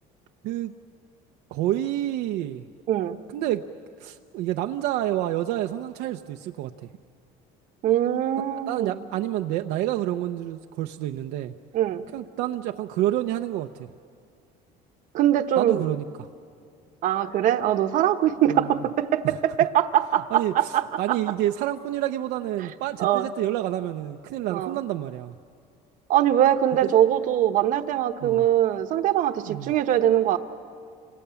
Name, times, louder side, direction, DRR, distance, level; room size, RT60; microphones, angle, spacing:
voice 1, 1.5-2.6 3.3-3.6 4.0-6.7 8.7-11.5 12.1-13.9 15.6-16.0 18.5-18.8 20.3-25.3 26.8-26.9 28.2-28.5 29.5-29.7, right 13 dB, 70° right, 5 dB, 0.7 m, -28 dB
voice 2, 7.8-9.0 11.7-12.0 15.1-15.8 17.0-21.2 23.0-23.3 24.5-24.8 26.1-30.4, right 11 dB, 50° right, 9 dB, 1.1 m, -22 dB
29.5 x 26.5 x 7.0 m, 2.3 s
cardioid pair, 170°, 17 cm